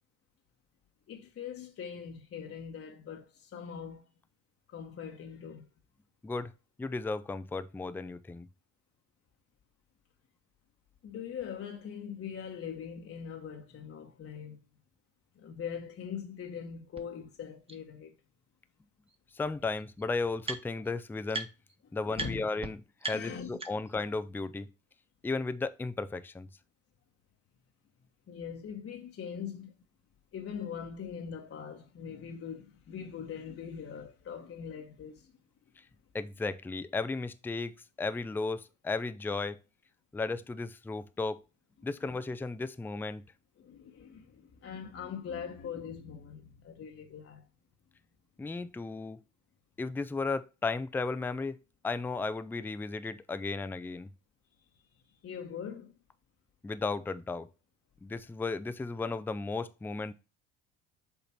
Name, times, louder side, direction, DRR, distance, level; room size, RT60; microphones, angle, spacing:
voice 1, 1.1-4.0 4.7-5.7 11.0-14.6 15.4-18.1 21.8-22.4 23.1-23.5 28.3-29.7 30.3-35.3 43.6-47.4 54.8-55.9, left 7 dB, 35° left, 1.1 m, -42 dB
voice 2, 6.8-8.5 19.3-21.5 21.9-24.7 25.2-26.5 36.1-39.6 40.1-41.4 41.8-43.2 48.4-49.2 49.8-51.6 51.8-54.1 56.6-57.5 58.0-60.1, left 3 dB, 5° left, 0.5 m, -35 dB
sound 1, 17.0-17.1 17.7-17.8 19.1-19.2 19.4-20.9 21.3-21.8 22.1-22.3 22.6-22.7 23.0-24.0, right 3 dB, 15° right, 1.2 m, -39 dB
7.2 x 3.9 x 4.4 m
hypercardioid pair, 65°, 38 cm